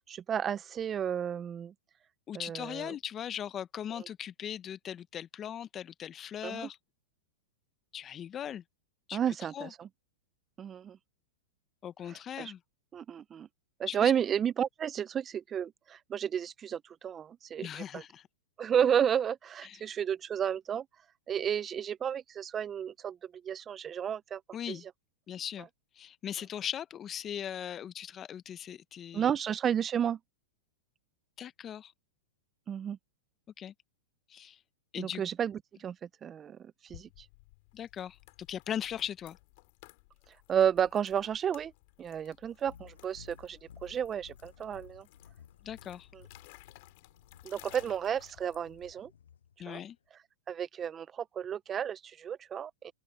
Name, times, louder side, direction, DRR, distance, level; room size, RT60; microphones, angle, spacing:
voice 1, 0.1-1.7 2.3-2.9 4.0-4.1 6.4-6.7 9.1-9.9 10.6-11.0 12.4-12.5 12.9-13.5 13.8-18.0 18.6-20.8 21.3-23.2 23.4-24.4 24.7-24.8 29.1-30.2 32.7-33.0 35.0-35.5 35.8-35.9 36.2-37.3 40.5-41.7 42.0-45.0 47.4-49.1 49.7-49.8 50.5-52.9, right 8 dB, 25° right, 0.5 m, -32 dB
voice 2, 2.3-6.8 7.9-8.6 9.1-9.7 11.8-12.6 13.9-14.1 17.6-18.3 19.6-19.9 24.5-24.8 25.3-25.7 25.9-29.3 31.4-31.9 33.6-33.7 34.3-34.6 34.9-35.2 37.7-38.2 38.5-39.4 45.6-46.1 49.6-50.0, left 9 dB, 25° left, 1.1 m, -39 dB
sound 1, 36.9-48.9, left 26 dB, 55° left, 5.5 m, -57 dB
sound 2, 42.7-50.1, left 8 dB, 85° left, 7.0 m, -56 dB
open air
hypercardioid pair, 115°, 0 cm